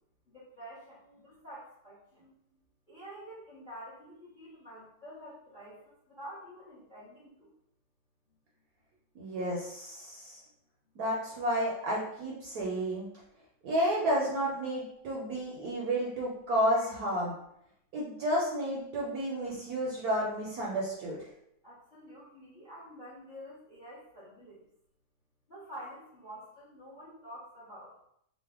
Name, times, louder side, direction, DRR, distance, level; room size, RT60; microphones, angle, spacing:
voice 1, 0.3-2.0 2.9-7.5 16.7-16.9 21.6-24.6 25.5-27.9, equal, 35° left, -8 dB, 0.8 m, -48 dB
voice 2, 9.2-10.4 11.0-13.1 13.6-17.3 17.9-21.2, equal, 65° right, -3 dB, 1.0 m, -31 dB
3.2 x 2.1 x 3.5 m, 0.73 s
omnidirectional pair, 2.1 m